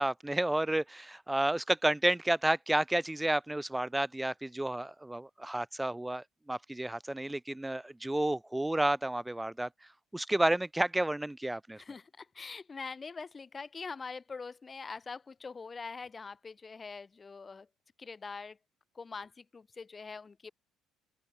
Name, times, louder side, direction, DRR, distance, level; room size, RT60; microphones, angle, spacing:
voice 1, 0.0-9.7 10.1-11.8, right 1 dB, 5° right, 0.9 m, -31 dB
voice 2, 11.8-17.7 18.0-18.6 18.9-20.5, left 4 dB, 20° left, 0.8 m, -43 dB
open air
cardioid pair, 150°, 0 cm